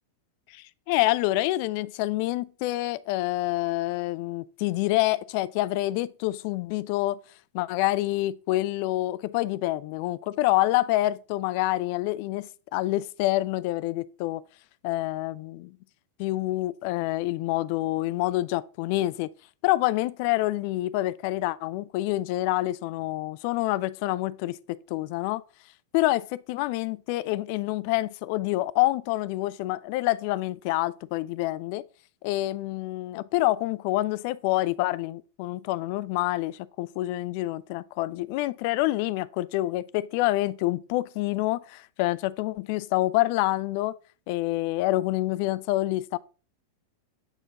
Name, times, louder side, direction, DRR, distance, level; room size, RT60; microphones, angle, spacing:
voice 1, 0.5-7.2 7.5-14.4 14.8-15.8 16.2-19.3 19.6-25.4 25.9-31.8 32.2-44.0 44.3-46.2, left 17 dB, 45° left, 0.3 m, -27 dB
8.7 x 4.4 x 2.8 m
figure-of-eight pair, 90°, 0 cm